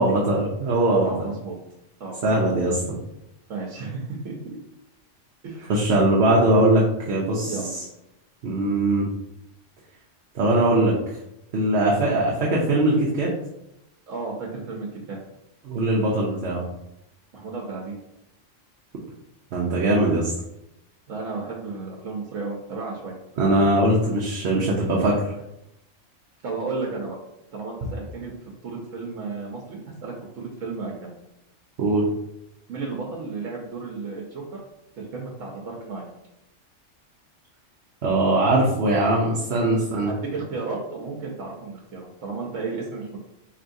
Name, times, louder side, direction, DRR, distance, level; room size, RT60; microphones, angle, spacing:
voice 1, 0.0-1.1 2.2-3.0 5.7-7.8 8.4-9.1 10.3-10.9 11.5-13.3 15.6-16.6 19.5-20.3 23.4-25.3 31.8-32.0 38.0-40.1, right 1 dB, 60° right, -4 dB, 0.8 m, -21 dB
voice 2, 1.0-1.6 2.0-2.2 3.5-4.6 5.4-5.8 7.5-7.7 11.9-12.1 14.1-15.2 17.3-18.0 21.1-23.2 24.6-25.1 26.4-27.2 27.5-31.1 32.7-34.6 35.0-36.1 40.0-43.2, right 4 dB, 85° right, -2 dB, 1.1 m, -33 dB
4.5 x 3.1 x 2.6 m, 0.85 s
omnidirectional pair, 1.3 m